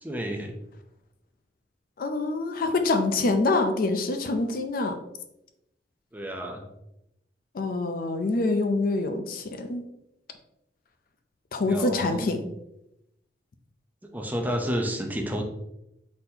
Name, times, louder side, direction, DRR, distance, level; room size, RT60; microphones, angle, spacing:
voice 1, 0.0-0.5 6.1-6.6 11.6-12.3 14.1-15.4, equal, 10° right, 2 dB, 0.5 m, -30 dB
voice 2, 2.0-5.0 7.5-9.9 11.5-12.4, left 3 dB, 50° left, 7 dB, 0.4 m, -26 dB
4.1 x 4.0 x 2.7 m, 0.85 s
head